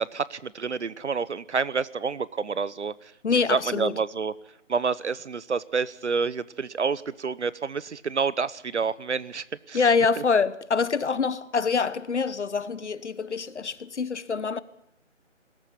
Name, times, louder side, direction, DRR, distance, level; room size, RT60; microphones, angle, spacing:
voice 1, 0.0-3.1 3.5-4.3 4.7-9.8, right 5 dB, 65° right, 0.9 m, -28 dB
voice 2, 3.2-3.9 9.7-14.6, left 5 dB, 65° left, 1.2 m, -25 dB
20.5 x 14.0 x 9.9 m
figure-of-eight pair, 170°, 38 cm